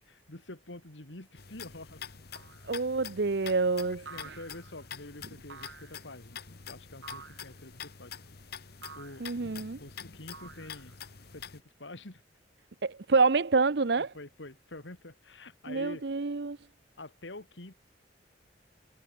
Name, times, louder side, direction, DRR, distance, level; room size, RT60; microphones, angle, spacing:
voice 1, 0.0-2.0 3.4-3.5 3.9-8.1 8.9-9.3 9.8-10.9 11.3-12.2 14.0-16.0 17.0-17.7, left 2 dB, 80° left, 2.7 m, -47 dB
sound 1, 1.4-11.6, left 7 dB, 60° left, 1.2 m, -46 dB
sound 2, 2.3-2.8 4.0-4.8 5.5-6.1 7.0-7.6 8.8-9.3 10.3-11.1, right 5 dB, 90° right, 2.5 m, -49 dB
voice 2, 2.7-4.4 9.2-9.8 12.8-14.1 15.7-16.6, right 4 dB, 65° right, 0.8 m, -27 dB
head